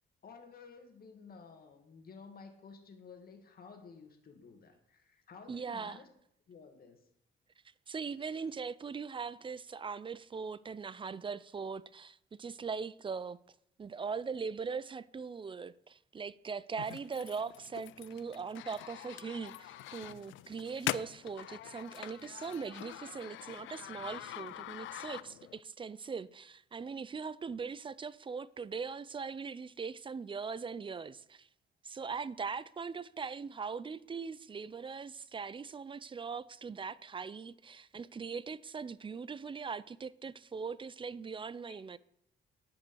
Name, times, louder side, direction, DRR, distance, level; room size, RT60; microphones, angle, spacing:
voice 1, 0.2-6.1 6.5-7.1 8.3-8.4 41.7-42.0, left 5 dB, 50° left, 2.1 m, -53 dB
voice 2, 5.5-6.0 7.9-13.4 13.8-31.5 31.8-42.0, right 5 dB, 25° right, 0.4 m, -40 dB
sound 1, 16.8-25.6, left 14 dB, 75° left, 0.4 m, -44 dB
10.5 x 5.1 x 6.9 m
cardioid pair, 90°, 20 cm